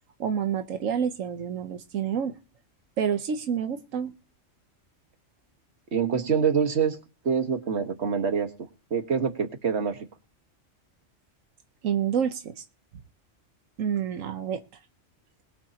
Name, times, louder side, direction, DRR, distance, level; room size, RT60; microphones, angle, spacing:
voice 1, 0.2-2.3 3.0-4.1 11.8-12.6 13.8-14.6, right 8 dB, 90° right, 8 dB, 1.3 m, -28 dB
voice 2, 5.9-8.5 8.9-10.1, right 6 dB, 55° right, 6 dB, 1.8 m, -26 dB
21.5 x 7.5 x 2.9 m, 0.36 s
omnidirectional pair, 1.3 m